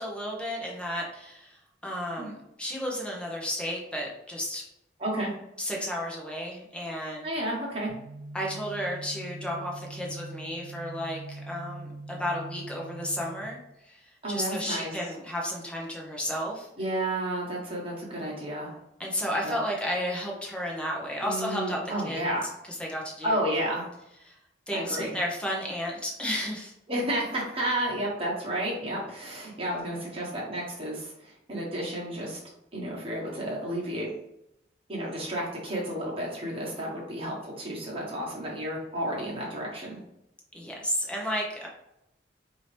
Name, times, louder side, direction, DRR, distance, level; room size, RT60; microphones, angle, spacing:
voice 1, 0.0-4.6 5.6-7.3 8.3-13.6 13.8-16.7 19.0-21.8 22.1-22.2 22.8-23.4 24.2-24.4 24.7-26.7 40.5-41.7, equal, 5° left, -2 dB, 0.9 m, -33 dB
voice 2, 5.0-5.3 7.2-7.9 14.2-15.1 16.8-18.8 19.4-19.6 21.2-22.5 23.2-23.9 24.7-25.1 26.9-32.4 32.7-34.1 34.9-40.0, right 1 dB, 30° right, -4 dB, 1.4 m, -31 dB
sound 1, 7.9-13.4, right 2 dB, 15° right, 1.1 m, -42 dB
4.7 x 2.8 x 3.3 m, 0.84 s
head